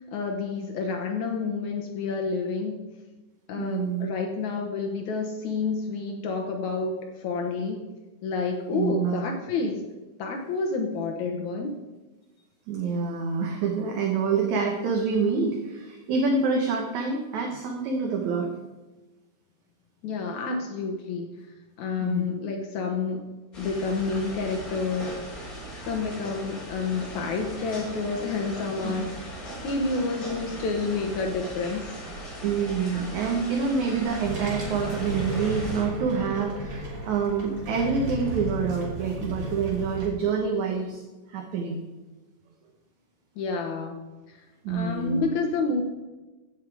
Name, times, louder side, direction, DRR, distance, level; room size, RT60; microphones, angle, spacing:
voice 1, 0.0-2.8 3.5-7.8 8.2-9.8 10.2-11.8 20.0-21.3 21.8-23.3 23.6-25.2 25.8-29.2 29.6-32.0 43.4-44.0 44.3-45.8, left 4 dB, 70° left, 2 dB, 2.4 m, -29 dB
voice 2, 3.6-4.1 8.7-9.2 12.7-18.5 22.0-22.3 28.8-28.9 32.4-41.0 41.3-41.8 44.6-45.2, right 5 dB, 70° right, 1 dB, 2.5 m, -27 dB
sound 1, 23.5-35.8, equal, 25° left, 4.7 m, -39 dB
sound 2, 34.0-40.1, right 1 dB, 50° right, 4.0 m, -34 dB
16.0 x 7.5 x 4.8 m, 1.2 s
omnidirectional pair, 3.6 m